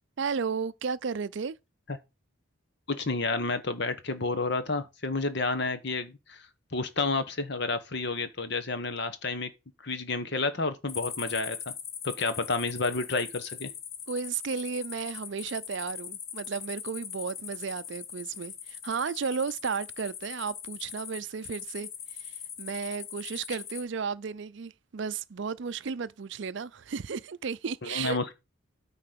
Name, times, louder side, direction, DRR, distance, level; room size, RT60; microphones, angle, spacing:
voice 1, 0.2-1.6 14.1-21.9 22.2-28.2, right 5 dB, 60° right, 0.5 m, -34 dB
voice 2, 2.9-6.4 6.7-9.5 9.8-11.6 12.0-13.7 27.8-28.3, left 3 dB, 55° left, 1.2 m, -30 dB
sound 1, 10.9-23.9, left 8 dB, 80° left, 1.4 m, -41 dB
9.6 x 4.0 x 6.7 m
head